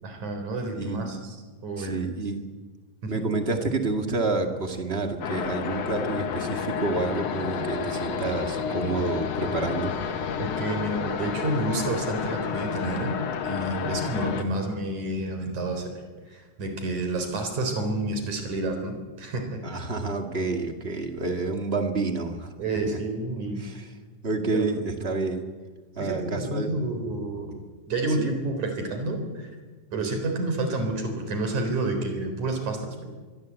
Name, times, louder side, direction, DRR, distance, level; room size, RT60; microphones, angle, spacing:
voice 1, 0.0-1.4 1.6-2.1 3.0-3.2 10.4-13.2 13.4-15.9 16.3-19.8 22.6-23.7 24.5-24.7 26.0-27.6 27.9-29.5 29.9-33.1, right 2 dB, 75° right, 5 dB, 5.2 m, -29 dB
voice 2, 0.7-1.2 1.8-2.5 3.1-9.9 19.6-23.0 23.6-23.9 24.2-25.4 26.0-26.7 28.1-28.3, right 3 dB, 25° right, 5 dB, 1.9 m, -29 dB
sound 1, 5.2-14.4, left 6 dB, 60° left, 2.4 m, -30 dB
24.5 x 22.0 x 8.3 m, 1.4 s
omnidirectional pair, 3.4 m